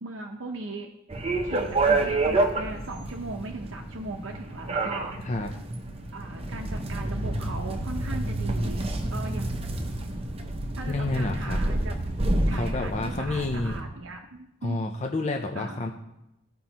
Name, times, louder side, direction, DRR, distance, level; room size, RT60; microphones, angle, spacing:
voice 1, 0.0-0.9 1.4-5.6 6.1-9.6 10.8-12.0 12.5-14.9 15.5-15.8, right 3 dB, 70° right, 2 dB, 0.7 m, -38 dB
sound 1, 1.1-13.8, right 2 dB, 30° right, 0.7 m, -29 dB
voice 2, 10.8-11.6 12.5-13.8 14.6-15.9, left 2 dB, 35° left, 3 dB, 0.5 m, -29 dB
14.5 x 5.3 x 2.9 m, 0.89 s
head